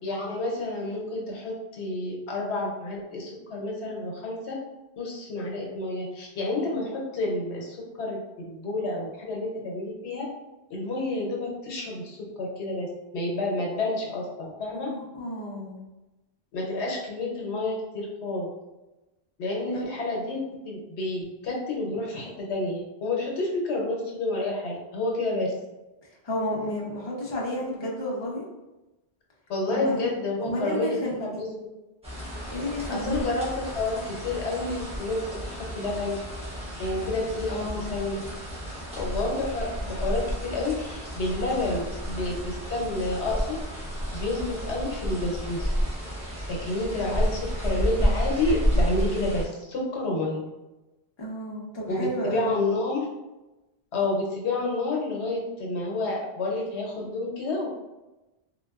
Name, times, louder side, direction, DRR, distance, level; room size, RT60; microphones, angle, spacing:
voice 1, 0.0-4.6 5.0-10.3 10.7-12.9 13.1-14.9 16.5-18.5 19.4-20.4 20.6-25.5 29.5-31.6 32.9-36.2 36.8-38.2 38.9-43.6 44.1-45.7 46.5-50.5 51.9-53.1 53.9-57.7, left 2 dB, 85° left, -2 dB, 1.0 m, -29 dB
voice 2, 14.7-15.8 19.7-20.0 26.2-28.4 29.7-30.1 30.4-31.4 32.5-33.3 37.5-37.8 51.2-52.6, equal, 30° left, -4 dB, 0.6 m, -32 dB
sound 1, 32.0-49.4, equal, 5° right, 0.9 m, -31 dB
3.4 x 2.2 x 2.3 m, 1.0 s
omnidirectional pair, 1.1 m